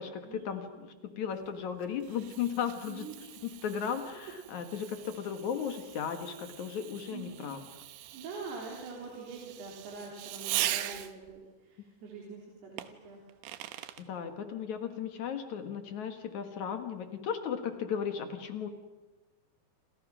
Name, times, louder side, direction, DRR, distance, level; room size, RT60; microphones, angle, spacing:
voice 1, 0.0-3.1 3.4-7.6 14.0-18.7, left 7 dB, 55° left, 8 dB, 2.3 m, -36 dB
Fireworks, 1.4-11.4 12.8-14.1, right 14 dB, 85° right, 3.3 m, -41 dB
voice 2, 2.8-3.2 7.1-7.5 8.1-13.2, right 4 dB, 65° right, -2 dB, 5.6 m, -44 dB
29.5 x 27.0 x 6.2 m, 1.2 s
omnidirectional pair, 5.1 m